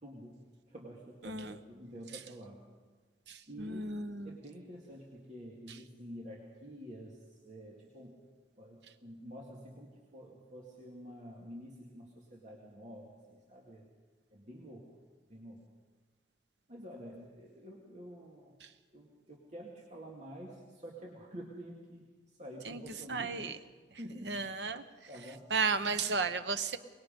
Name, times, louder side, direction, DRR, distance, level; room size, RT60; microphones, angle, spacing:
voice 1, 0.0-2.6 3.5-4.0 4.2-8.2 8.6-13.9 14.3-14.9 15.3-15.6 16.7-18.6 18.9-23.5 24.0-25.5, equal, 40° right, -2 dB, 2.2 m, -49 dB
voice 2, 1.2-1.6 3.3-4.4 18.6-18.7 22.7-22.8 23.1-23.6 24.2-24.8 25.5-26.8, right 4 dB, 70° right, 10 dB, 1.0 m, -34 dB
23.5 x 20.5 x 5.3 m, 1.4 s
head